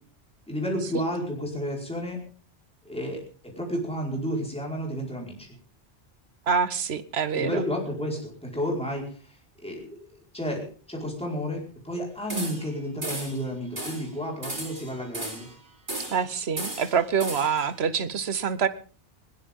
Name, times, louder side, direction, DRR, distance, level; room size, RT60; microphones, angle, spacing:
voice 1, 0.5-2.2 2.8-5.5 7.3-10.0 10.3-15.5, equal, 5° left, -2 dB, 4.8 m, -31 dB
voice 2, 6.5-7.6 16.1-18.7, right 6 dB, 65° right, 13 dB, 1.3 m, -26 dB
sound 1, 12.3-12.7 13.0-13.4 13.8-14.1 14.4-15.5 15.9-16.3 16.6-17.6, right 1 dB, 45° right, 3.9 m, -35 dB
20.5 x 18.0 x 3.7 m, 0.41 s
omnidirectional pair, 1.1 m